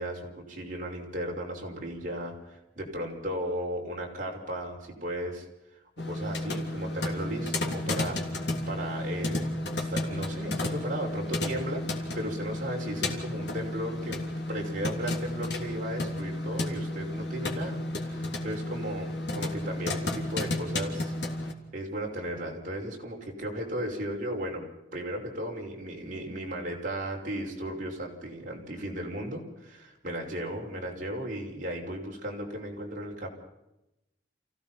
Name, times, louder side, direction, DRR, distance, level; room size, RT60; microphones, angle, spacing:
voice 1, 0.0-5.5 6.0-14.2 14.5-24.7 24.9-33.3, right 1 dB, 45° right, -1 dB, 5.9 m, -36 dB
sound 1, 6.0-21.5, left 1 dB, 65° left, 3.1 m, -32 dB
28.5 x 16.5 x 5.9 m, 0.91 s
head